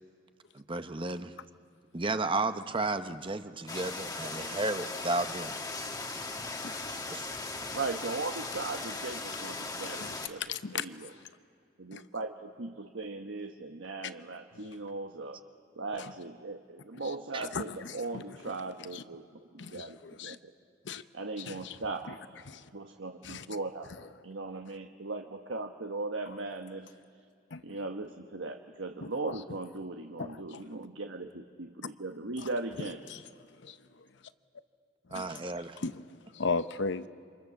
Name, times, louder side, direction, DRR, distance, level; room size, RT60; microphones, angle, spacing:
voice 1, 0.5-1.3 1.9-5.6 7.1-7.2 17.3-17.4 35.1-35.8, right 2 dB, 30° right, 9 dB, 0.9 m, -33 dB
sound 1, 3.7-10.3, left 3 dB, 20° left, 1.6 m, -38 dB
voice 2, 7.7-11.1 11.8-15.4 15.7-19.2 19.5-20.5 21.1-22.2 22.7-23.9 24.2-26.9 27.6-33.0, right 3 dB, 75° right, 4 dB, 1.2 m, -38 dB
voice 3, 9.8-10.1 10.4-10.9 11.9-12.0 16.0-16.1 17.0-17.1 17.5-18.4 18.9-19.0 19.6-20.4 20.8-21.0 21.4-21.8 22.5-22.7 23.2-23.5 27.5-27.6 29.3-29.4 30.2-30.6 32.4-32.5 32.8-33.2 33.6-33.8 35.1-35.4 35.8-36.0 36.3-37.1, left 4 dB, 65° left, 12 dB, 0.9 m, -37 dB
28.0 x 27.0 x 7.2 m, 2.5 s
head